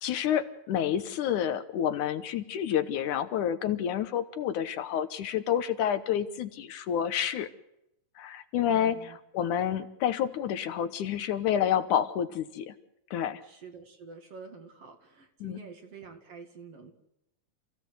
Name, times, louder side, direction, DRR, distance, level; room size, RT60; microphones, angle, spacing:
voice 1, 0.0-7.5 8.2-12.8 13.1-13.4 15.4-15.6, left 9 dB, 75° left, 10 dB, 2.4 m, -29 dB
voice 2, 8.7-9.2 13.4-16.9, right 5 dB, 50° right, 5 dB, 3.0 m, -47 dB
28.0 x 15.5 x 8.0 m, 0.84 s
omnidirectional pair, 3.8 m